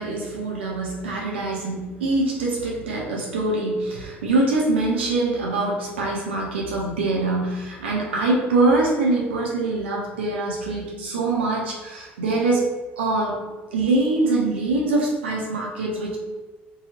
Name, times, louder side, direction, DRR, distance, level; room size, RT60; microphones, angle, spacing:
voice 1, 0.0-13.4 13.7-16.2, right 2 dB, 80° right, -2 dB, 0.6 m, -24 dB
2.8 x 2.3 x 2.8 m, 1.2 s
figure-of-eight pair, 60°, 6 cm